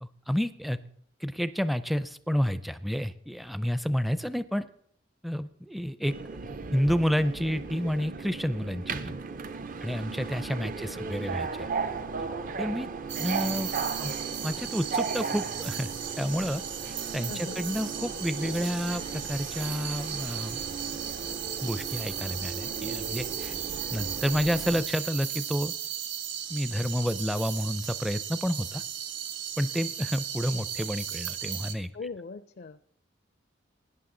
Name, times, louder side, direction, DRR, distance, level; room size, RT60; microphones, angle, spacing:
voice 1, 0.0-0.8 1.2-4.7 5.2-6.1 6.7-9.2 9.8-11.7 12.6-12.9 13.2-13.7 14.0-14.1 14.4-20.6 21.6-23.6 23.9-25.7 26.5-28.8 29.6-31.9, equal, ahead, 14 dB, 0.4 m, -30 dB
Subway metro underground, 6.1-24.8, right 4 dB, 45° right, 0.6 m, -36 dB
voice 2, 10.6-11.5 13.4-14.1 17.3-17.6 31.9-32.8, left 4 dB, 55° left, 13 dB, 0.4 m, -43 dB
sound 1, 13.1-31.7, right 9 dB, 85° right, 1.2 m, -36 dB
sound 2, 14.7-21.9, right 1 dB, 70° right, 6.4 m, -58 dB
17.0 x 10.0 x 3.8 m, 0.70 s
head